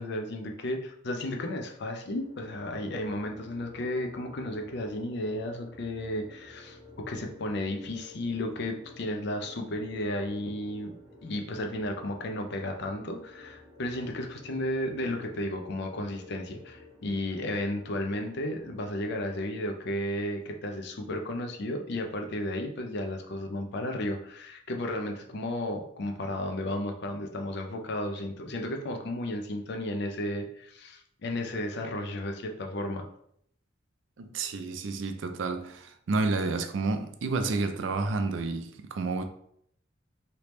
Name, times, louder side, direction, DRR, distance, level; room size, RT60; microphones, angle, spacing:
voice 1, 0.0-10.9 11.2-33.1, left 1 dB, 60° left, 0.5 m, -33 dB
sound 1, 2.2-19.3, left 2 dB, 10° right, 1.5 m, -52 dB
voice 2, 34.2-39.2, right 3 dB, 70° right, 0.4 m, -30 dB
3.3 x 2.8 x 3.0 m
head